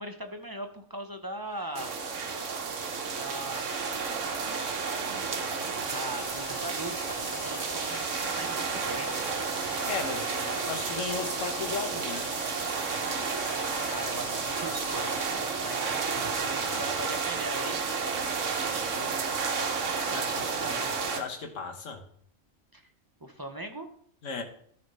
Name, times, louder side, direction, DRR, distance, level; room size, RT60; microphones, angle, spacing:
voice 1, 0.0-2.0 3.2-3.7 5.3-8.0 8.4-9.4 13.9-17.8 18.6-19.4 20.0-20.9 22.7-22.9 23.2-23.9, right 1 dB, 20° right, 6 dB, 0.6 m, -40 dB
sound 1, 1.4-6.7, right 2 dB, 20° left, 4.6 m, -51 dB
sound 2, 1.7-21.2, right 5 dB, 75° right, 1.4 m, -31 dB
sound 3, 6.2-15.3, left 9 dB, 55° left, 0.5 m, -44 dB
voice 2, 9.9-12.3 16.6-16.8 20.1-20.6 21.1-22.0 24.2-24.4, left 5 dB, 80° left, 3 dB, 1.6 m, -36 dB
13.0 x 4.3 x 5.3 m, 0.64 s
omnidirectional pair, 1.3 m